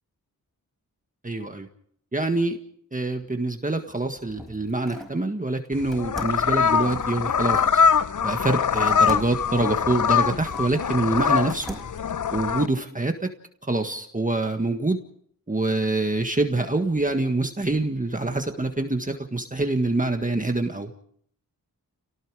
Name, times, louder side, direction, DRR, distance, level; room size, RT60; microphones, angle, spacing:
voice 1, 1.2-1.7 2.1-2.6 2.9-7.8 8.2-11.7 12.3-13.3 13.6-15.0 15.5-20.9, right 2 dB, 25° right, 5 dB, 1.7 m, -25 dB
sound 1, 3.8-5.2 5.9-7.8 8.9-10.7 11.2-12.1, equal, ahead, 5.2 m, -42 dB
sound 2, 5.7-12.7, left 6 dB, 60° left, 0.8 m, -23 dB
28.5 x 18.5 x 4.9 m, 0.63 s
wide cardioid pair, 80°, 35 cm